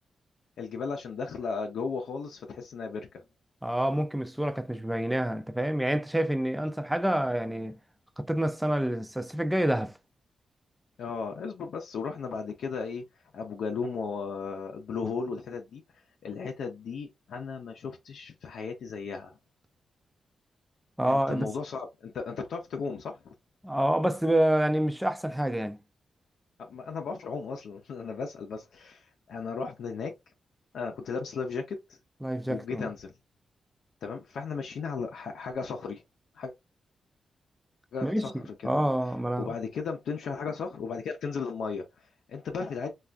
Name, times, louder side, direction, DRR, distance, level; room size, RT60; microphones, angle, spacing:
voice 1, 0.6-3.2 11.0-13.0 13.3-15.8 16.2-19.4 21.1-23.3 26.6-30.1 30.7-32.0 32.5-33.1 34.0-36.0 36.3-36.5 37.9-38.8 39.4-42.9, left 5 dB, 85° left, 0.5 m, -35 dB
voice 2, 3.6-7.7 8.2-9.9 21.0-21.5 23.6-25.8 32.2-32.9 38.0-38.2 38.6-39.5, right 1 dB, 5° right, 0.3 m, -27 dB
3.3 x 2.3 x 2.4 m
wide cardioid pair, 115°, 0 cm